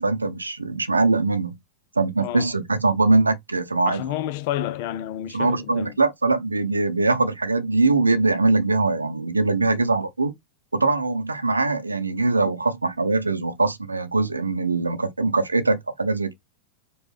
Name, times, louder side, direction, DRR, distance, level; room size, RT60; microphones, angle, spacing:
voice 1, 0.0-1.6 2.0-4.0 5.3-10.3 10.7-16.3, right 3 dB, 80° right, 0.7 m, -22 dB
voice 2, 2.2-2.5 3.9-6.0, left 12 dB, 50° left, 0.5 m, -30 dB
4.8 x 2.3 x 4.2 m
figure-of-eight pair, 90°, 0 cm